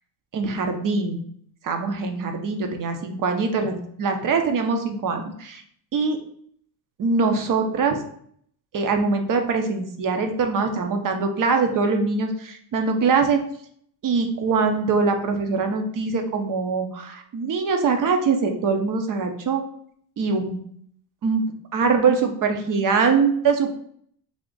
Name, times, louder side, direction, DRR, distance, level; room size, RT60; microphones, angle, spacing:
voice 1, 0.3-1.2 1.6-5.6 5.9-6.2 7.0-8.0 8.7-13.4 14.0-19.6 20.2-20.6 21.2-21.4 21.7-23.7, right 4 dB, 40° right, 5 dB, 0.8 m, -23 dB
3.6 x 2.4 x 3.8 m, 0.63 s
supercardioid pair, 85°, 50 cm